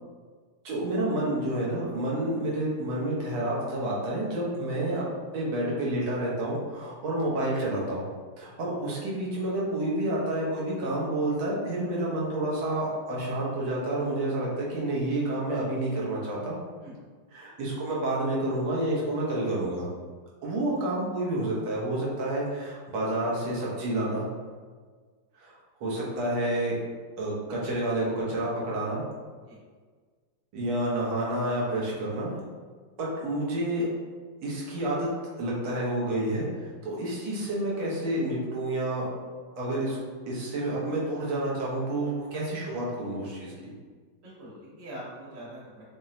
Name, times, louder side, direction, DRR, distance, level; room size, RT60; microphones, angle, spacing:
voice 1, 0.6-5.0 5.3-8.1 8.4-16.6 17.3-19.9 20.4-24.3 25.4-25.5 25.8-26.7 27.2-29.0 30.5-32.4 33.0-33.9 34.4-35.1 35.3-39.1 39.6-40.0 40.3-43.5, right 1 dB, 85° right, -5 dB, 1.7 m, -29 dB
voice 2, 44.2-45.8, right 1 dB, 40° right, -6 dB, 1.0 m, -43 dB
5.8 x 2.0 x 2.6 m, 1.5 s
omnidirectional pair, 2.2 m